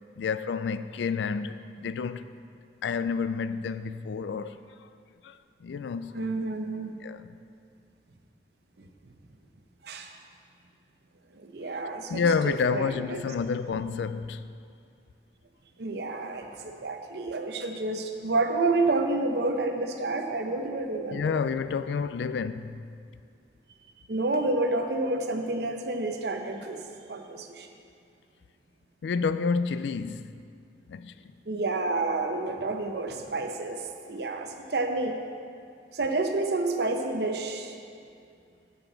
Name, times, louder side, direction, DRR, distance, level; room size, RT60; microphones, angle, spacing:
voice 1, 0.2-2.2 2.8-4.9 5.2-6.3 7.0-7.3 12.1-14.5 21.1-22.8 29.0-30.3 30.9-31.1, left 5 dB, 75° left, 0.3 m, -29 dB
voice 2, 6.1-7.0 8.8-8.9 9.8-10.1 11.3-13.2 15.8-21.4 24.1-26.8 27.1-27.7 31.5-35.2 35.9-37.7, right 2 dB, 65° right, 0.8 m, -29 dB
10.0 x 8.0 x 3.9 m
head